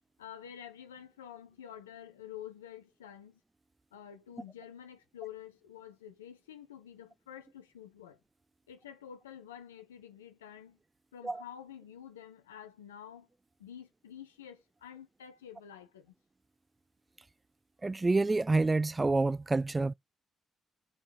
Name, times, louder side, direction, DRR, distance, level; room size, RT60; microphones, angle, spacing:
voice 1, 0.2-3.4 3.9-8.2 8.7-10.8 11.1-13.3 13.6-16.1, left 10 dB, 85° left, 0.9 m, -49 dB
voice 2, 17.8-19.9, right 3 dB, 25° right, 0.4 m, -28 dB
5.9 x 4.1 x 4.4 m
figure-of-eight pair, 40°, 0 cm